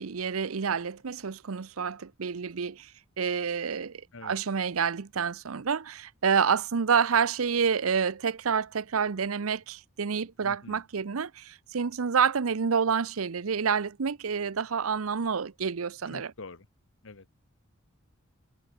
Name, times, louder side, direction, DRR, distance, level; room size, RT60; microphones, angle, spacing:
voice 1, 0.0-2.9 3.2-16.3, right 6 dB, 85° right, 0.7 m, -28 dB
voice 2, 10.4-10.8 16.1-16.7 17.0-17.4, left 3 dB, 65° left, 1.2 m, -45 dB
head